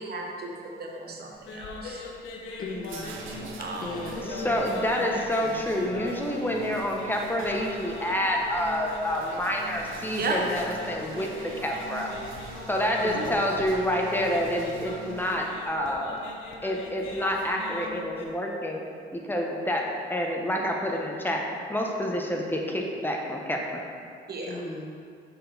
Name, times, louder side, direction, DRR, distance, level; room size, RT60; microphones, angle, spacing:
voice 1, 0.0-2.1 3.6-3.9 10.2-10.3 13.1-13.3 24.3-24.6, right 3 dB, 55° right, 0 dB, 1.0 m, -34 dB
sound 1, 1.3-18.2, left 2 dB, 80° left, 0.8 m, -41 dB
sound 2, 2.2-15.7, right 5 dB, 85° right, 0.7 m, -44 dB
voice 2, 2.6-3.1 3.7-4.6 4.9-5.9 13.0-13.5 24.4-25.0, left 2 dB, 45° left, -1 dB, 1.0 m, -38 dB
voice 3, 4.3-11.3 11.6-12.1 12.7-16.2 16.6-18.8 19.1-23.6, equal, 10° left, 0 dB, 0.8 m, -28 dB
6.3 x 4.3 x 4.0 m, 2.4 s
cardioid pair, 90°, 20 cm